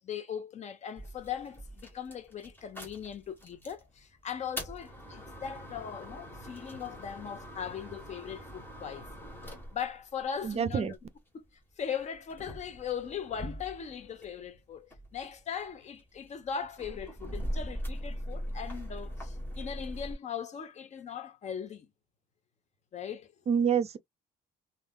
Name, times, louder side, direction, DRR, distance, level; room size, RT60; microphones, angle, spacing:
voice 1, 0.0-9.1 9.7-10.9 11.3-11.4 11.8-21.9 22.9-23.3, left 8 dB, 45° left, 0.9 m, -39 dB
sound 1, 1.0-3.8 4.3-11.1 11.8-14.4 14.8-20.1, equal, 10° left, 1.3 m, -41 dB
voice 2, 10.4-11.0 23.5-24.0, right 7 dB, 40° right, 0.5 m, -27 dB
3.4 x 2.5 x 2.3 m
cardioid pair, 110°, 17 cm